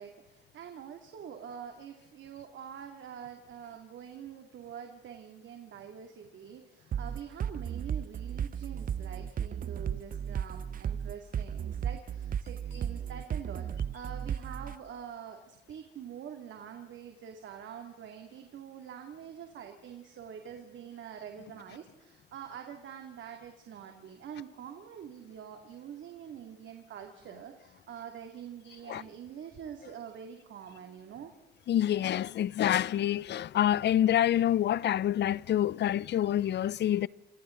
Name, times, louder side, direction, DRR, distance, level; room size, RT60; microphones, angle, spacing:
voice 1, 0.0-31.3, right 8 dB, 70° right, 2.5 m, -45 dB
sound 1, 6.9-14.8, right 8 dB, 45° right, 0.7 m, -34 dB
voice 2, 31.7-37.1, left 11 dB, 60° left, 0.6 m, -27 dB
27.5 x 27.0 x 3.9 m
cardioid pair, 90°, 20 cm